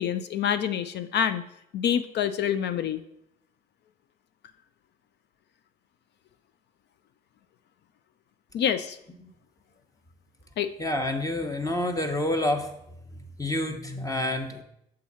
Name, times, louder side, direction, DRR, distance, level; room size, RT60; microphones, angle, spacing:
voice 1, 0.0-1.4 1.7-3.0 8.5-9.0 10.6-10.7, left 9 dB, 55° left, 11 dB, 0.4 m, -26 dB
voice 2, 10.8-12.7 13.4-14.6, left 1 dB, 15° left, 5 dB, 1.0 m, -28 dB
6.9 x 3.7 x 4.2 m, 0.78 s
hypercardioid pair, 50°, 21 cm